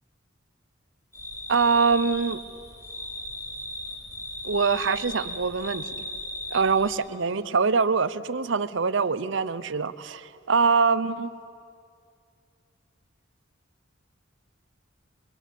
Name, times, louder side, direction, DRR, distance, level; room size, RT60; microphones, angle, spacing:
sound 1, 1.1-6.9, left 1 dB, 15° left, 5.4 m, -37 dB
voice 1, 1.5-2.4 4.4-6.1 6.5-11.3, right 5 dB, 65° right, 15 dB, 0.7 m, -24 dB
26.0 x 24.0 x 8.4 m, 2.4 s
head